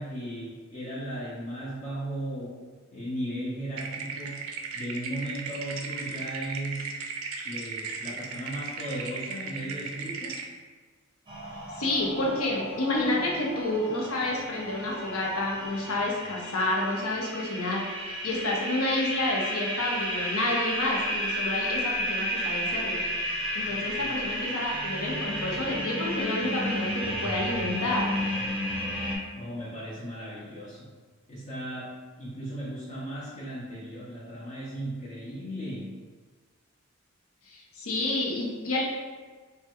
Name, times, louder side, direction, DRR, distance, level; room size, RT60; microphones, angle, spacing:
voice 1, 0.0-2.6 2.9-4.5 4.7-6.9 7.4-10.4 29.3-30.9 31.3-35.9, right 1 dB, 35° left, -8 dB, 0.5 m, -36 dB
sound 1, 3.8-10.5, right 5 dB, 75° right, 0.4 m, -36 dB
sound 2, 11.3-29.2, equal, 25° right, 0.5 m, -32 dB
voice 2, 11.8-23.0 23.5-28.1 37.4-38.8, left 2 dB, 85° left, -2 dB, 0.7 m, -29 dB
3.3 x 2.2 x 2.9 m, 1.5 s
head